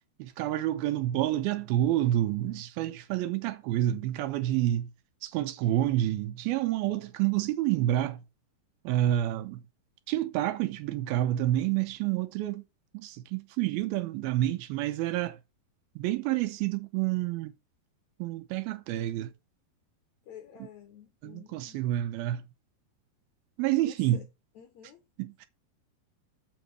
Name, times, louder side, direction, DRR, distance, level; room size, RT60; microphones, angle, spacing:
voice 1, 0.2-4.9 5.2-8.2 8.8-9.6 10.1-12.6 12.9-15.4 16.0-17.5 18.2-19.3 20.6-20.7 21.2-22.4 23.6-24.3 25.2-25.5, right 13 dB, 80° right, 2.4 m, -28 dB
voice 2, 20.3-21.8 23.8-23.9 24.6-25.0, left 9 dB, 80° left, 1.6 m, -50 dB
7.4 x 5.1 x 6.0 m
omnidirectional pair, 4.6 m